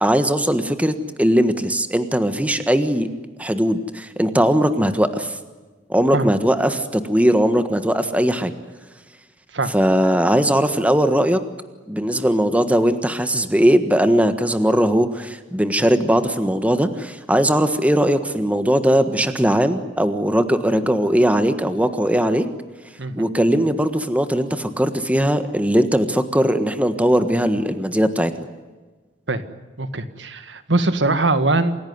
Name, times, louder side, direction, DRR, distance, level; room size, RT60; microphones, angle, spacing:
voice 1, 0.0-3.1 3.4-5.3 5.9-8.5 9.7-11.4 11.9-22.4 23.2-28.5, equal, 10° right, 9 dB, 1.5 m, -19 dB
voice 2, 29.8-31.8, right 2 dB, 80° right, 11 dB, 1.8 m, -21 dB
27.5 x 16.5 x 9.5 m, 1.3 s
head